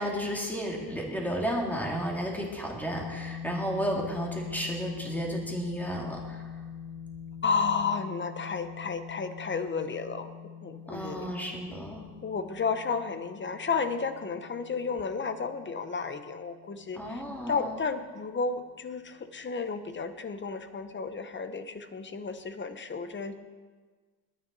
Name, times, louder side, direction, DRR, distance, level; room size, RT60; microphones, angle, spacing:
voice 1, 0.0-6.6 10.9-12.0 16.9-17.8, equal, 5° left, -1 dB, 2.3 m, -33 dB
sound 1, 2.9-18.8, left 8 dB, 70° left, 2.7 m, -44 dB
voice 2, 7.4-10.3 10.6-11.3 12.2-23.3, left 5 dB, 30° left, 10 dB, 0.8 m, -32 dB
19.5 x 9.7 x 4.0 m, 1.4 s
cardioid pair, 140°, 38 cm